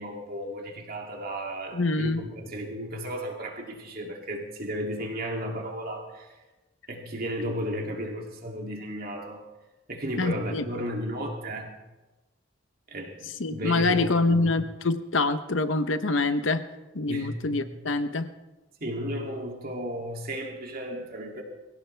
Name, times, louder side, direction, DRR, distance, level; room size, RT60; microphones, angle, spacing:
voice 1, 0.0-6.3 6.9-9.4 9.9-11.7 12.9-13.2 13.5-14.6 17.1-17.7 18.8-21.4, equal, 50° right, 1 dB, 2.7 m, -34 dB
voice 2, 1.7-2.2 10.2-10.6 13.4-16.6 16.9-18.3, left 3 dB, 85° left, 11 dB, 0.9 m, -25 dB
23.5 x 16.5 x 3.4 m, 1.1 s
head